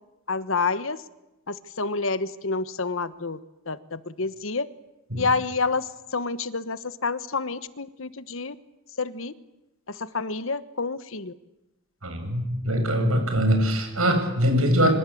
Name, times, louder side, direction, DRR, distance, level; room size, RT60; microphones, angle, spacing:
voice 1, 0.3-1.0 1.5-3.4 3.7-4.7 5.2-8.5 9.0-9.3 10.0-11.3, left 4 dB, 70° left, 14 dB, 1.3 m, -28 dB
voice 2, 12.0-14.9, equal, 80° right, 5 dB, 7.7 m, -22 dB
26.5 x 26.0 x 8.6 m, 0.96 s
head